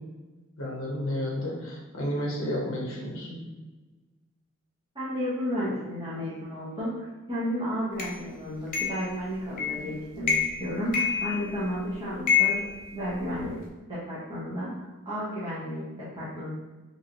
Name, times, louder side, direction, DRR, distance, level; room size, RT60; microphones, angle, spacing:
voice 1, 0.6-3.4, left 1 dB, 65° left, -3 dB, 0.9 m, -31 dB
voice 2, 4.9-10.3 10.6-12.6 12.9-13.6 13.9-16.5, equal, 25° right, -10 dB, 0.8 m, -32 dB
sound 1, 8.0-8.1 8.7-9.1 9.6-9.9 10.2-10.6 10.9-11.7 12.3-13.5, left 7 dB, 40° left, 0.6 m, -26 dB
3.1 x 2.5 x 2.8 m, 1.2 s
head